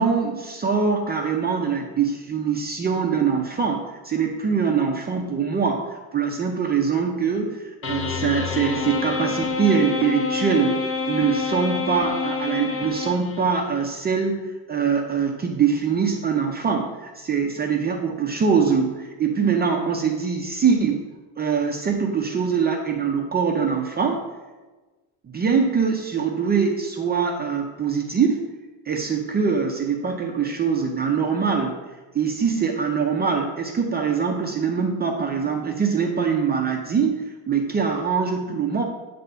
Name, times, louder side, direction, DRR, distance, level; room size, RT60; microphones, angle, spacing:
voice 1, 0.0-14.4 14.7-21.0 21.4-24.2 25.3-28.4 28.9-31.8 32.1-38.8, right 6 dB, 20° right, 1 dB, 0.5 m, -23 dB
sound 1, 7.8-13.6, left 4 dB, 30° left, 0.6 m, -27 dB
9.6 x 3.4 x 6.7 m, 1.2 s
cardioid pair, 170°, 46 cm